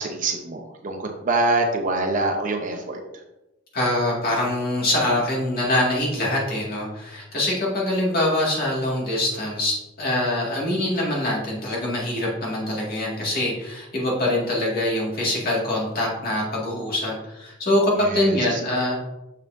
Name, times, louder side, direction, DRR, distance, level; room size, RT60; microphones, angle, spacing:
voice 1, 0.0-3.0 18.0-18.6, right 2 dB, 40° right, 3 dB, 0.8 m, -25 dB
voice 2, 3.7-19.0, left 1 dB, 50° left, -4 dB, 2.0 m, -24 dB
6.6 x 5.5 x 2.6 m, 0.95 s
head